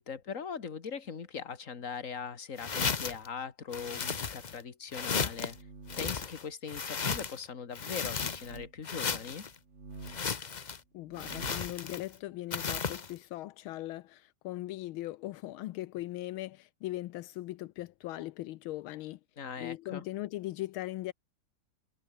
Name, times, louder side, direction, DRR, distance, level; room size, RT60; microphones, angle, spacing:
voice 1, 0.0-5.6 6.0-9.5 19.4-20.0, left 6 dB, 40° left, 2.2 m, -40 dB
sound 1, 2.6-3.3 3.7-4.6 4.9-5.5 5.9-7.4 7.7-8.6 8.8-9.5 10.0-10.8 11.2-12.1 12.5-13.1, left 6 dB, 60° left, 0.4 m, -35 dB
sound 2, 5.2-6.2 6.9-7.3 8.3-8.7 9.6-10.3 11.0-11.7, right 4 dB, 35° right, 2.7 m, -49 dB
voice 2, 10.9-19.2 19.6-21.1, left 16 dB, 80° left, 1.5 m, -39 dB
omnidirectional pair, 2.3 m